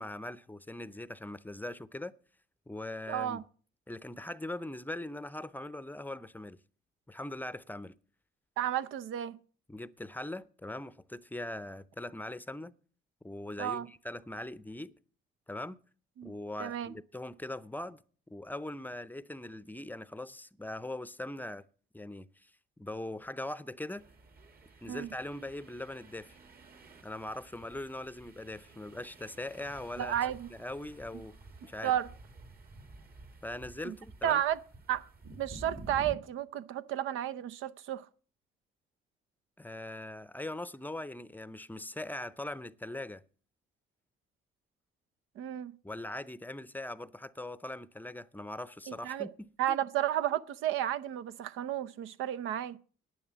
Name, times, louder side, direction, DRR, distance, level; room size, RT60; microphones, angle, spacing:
voice 1, 0.0-2.1 2.7-3.4 3.9-6.6 7.1-8.0 9.7-12.7 13.2-14.9 15.5-15.8 16.2-18.0 18.3-21.6 21.9-22.5 22.8-24.0 24.8-26.4 27.0-30.2 30.5-31.3 31.6-31.9 33.4-34.4 39.6-43.2 45.8-49.3 49.7-49.8, left 1 dB, 10° left, 0.6 m, -41 dB
voice 2, 3.1-3.4 8.6-9.4 13.6-13.9 16.2-16.3 16.6-16.9 24.9-25.1 30.0-30.5 31.8-32.1 33.8-34.0 34.2-34.6 34.9-35.1 35.4-38.1 45.4-45.7 48.9-49.3 49.6-52.8, right 11 dB, 90° right, 0.6 m, -32 dB
sound 1, 24.0-36.1, right 2 dB, 50° right, 2.2 m, -51 dB
11.0 x 9.5 x 7.0 m
cardioid pair, 90°, 20 cm